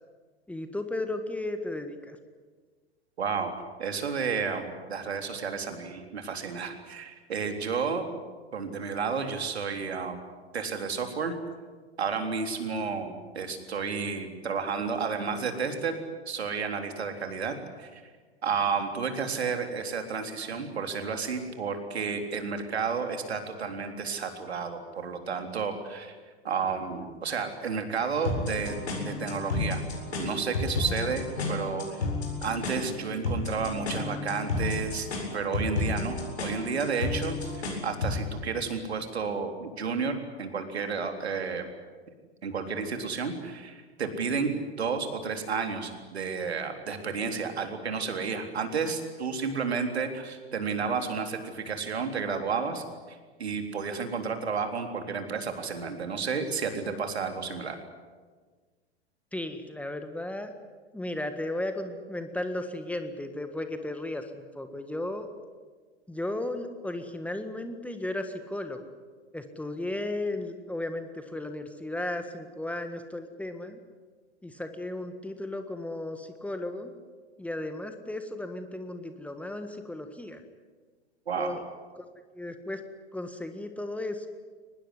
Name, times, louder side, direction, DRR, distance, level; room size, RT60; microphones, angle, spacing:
voice 1, 0.5-2.2 59.3-60.5 60.9-65.3 66.1-68.9 69.3-73.8 74.4-76.9 77.4-80.4 81.4-81.6 82.0-82.1 82.3-82.8 83.1-84.3, left 1 dB, 5° left, 8 dB, 1.7 m, -35 dB
voice 2, 3.2-3.5 3.8-8.1 8.5-10.2 10.5-11.3 12.0-16.0 16.3-18.0 18.4-26.1 26.4-28.8 29.0-29.8 30.2-32.1 32.4-35.1 35.3-41.7 42.4-57.8 81.3-81.6, right 5 dB, 70° right, 6 dB, 3.7 m, -31 dB
sound 1, 28.2-38.2, left 3 dB, 70° left, 7.7 m, -32 dB
24.0 x 20.0 x 9.8 m, 1.4 s
figure-of-eight pair, 100°, 33 cm